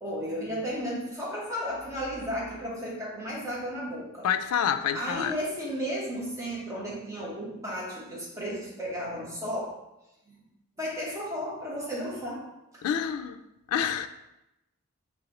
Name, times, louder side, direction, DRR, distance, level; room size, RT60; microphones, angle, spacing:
voice 1, 0.0-4.3 4.9-9.8 10.3-10.4 10.8-12.5 12.7-12.8, equal, 15° right, -5 dB, 1.0 m, -34 dB
voice 2, 4.2-5.3 12.8-13.4 13.7-14.1, left 8 dB, 90° left, 13 dB, 0.3 m, -27 dB
4.9 x 3.2 x 2.9 m, 0.92 s
head